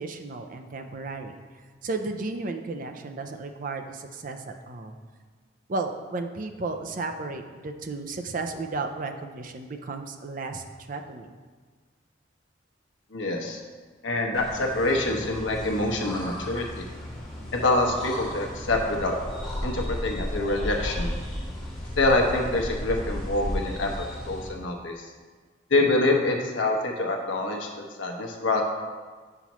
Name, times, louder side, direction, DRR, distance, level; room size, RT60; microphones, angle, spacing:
voice 1, 0.0-1.4 1.8-5.0 5.7-11.3, right 3 dB, 45° right, 5 dB, 0.5 m, -34 dB
voice 2, 13.1-13.6 14.0-16.8 17.5-19.1 19.6-21.1 22.0-23.9 24.2-25.1 25.7-27.7 28.0-28.6, left 2 dB, 80° left, 1 dB, 0.9 m, -25 dB
sound 1, 14.3-24.5, left 1 dB, ahead, 1.4 m, -34 dB
8.2 x 5.7 x 3.0 m, 1.4 s
head